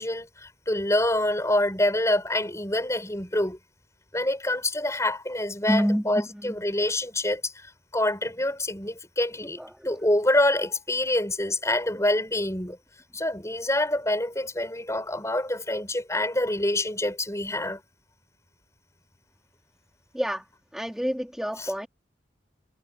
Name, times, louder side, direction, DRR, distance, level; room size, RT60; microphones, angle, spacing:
voice 1, 0.0-3.6 4.1-12.8 13.1-17.8 21.6-21.7, left 1 dB, 15° left, 6.4 m, -26 dB
voice 2, 5.7-6.5 9.6-10.0 20.1-20.5 20.7-21.9, equal, ahead, 3.5 m, -28 dB
head